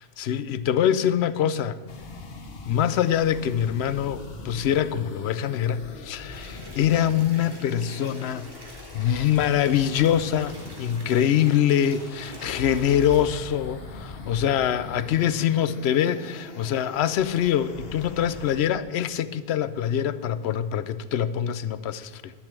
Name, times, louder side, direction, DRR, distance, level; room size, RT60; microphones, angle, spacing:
voice 1, 0.0-1.8 2.7-8.5 8.9-22.3, left 10 dB, 85° left, 0.8 m, -24 dB
sound 1, 1.9-18.6, left 3 dB, 65° left, 1.3 m, -42 dB
sound 2, 6.3-13.2, equal, 20° right, 1.9 m, -47 dB
Mechanisms, 9.3-15.2, right 3 dB, 40° left, 3.7 m, -45 dB
11.0 x 7.8 x 7.3 m
omnidirectional pair, 1.1 m